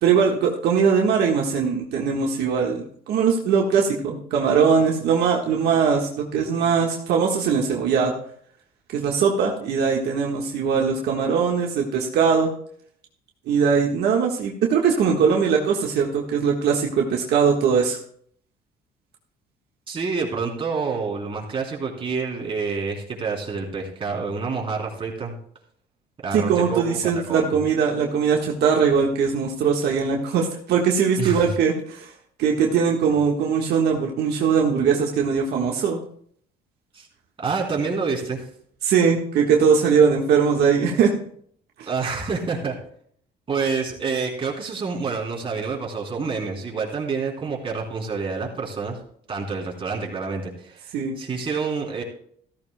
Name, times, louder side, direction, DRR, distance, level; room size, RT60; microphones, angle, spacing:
voice 1, 0.0-8.1 8.9-12.5 13.5-18.0 26.3-32.1 32.4-36.0 38.8-41.1 41.8-41.9 50.9-51.1, right 6 dB, 75° right, 0 dB, 1.5 m, -21 dB
voice 2, 19.9-25.4 26.2-27.0 27.3-27.5 31.2-31.5 36.9-37.1 37.4-38.5 41.9-42.8 43.5-49.0 49.3-50.9 51.2-52.0, right 4 dB, 30° right, -2 dB, 3.5 m, -28 dB
14.5 x 13.5 x 2.2 m, 0.62 s
cardioid pair, 110°, 17 cm